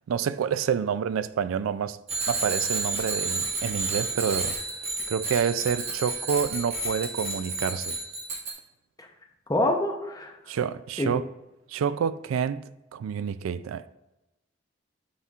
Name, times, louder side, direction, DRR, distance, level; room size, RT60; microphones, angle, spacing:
voice 1, 0.1-2.0 2.3-4.6 5.1-8.0 10.5-11.2 11.7-13.9, right 7 dB, 85° right, 0.3 m, -28 dB
Bicycle bell, 2.1-8.5, right 3 dB, 30° right, 1.1 m, -31 dB
voice 2, 9.5-10.5 11.0-11.1, left 1 dB, 20° left, 0.6 m, -26 dB
9.4 x 4.3 x 2.4 m
head